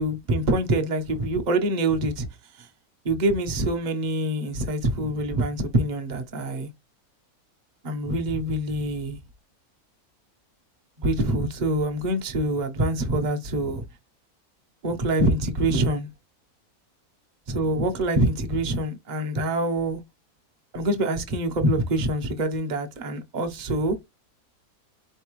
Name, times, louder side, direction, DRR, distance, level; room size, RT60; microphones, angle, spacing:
voice 1, 0.0-2.3 2.6-2.7 3.0-6.7 7.8-9.2 11.0-13.8 14.8-16.1 17.5-20.0 20.7-24.0, right 1 dB, 35° right, 0.8 m, -25 dB
4.4 x 3.3 x 3.0 m
omnidirectional pair, 1.6 m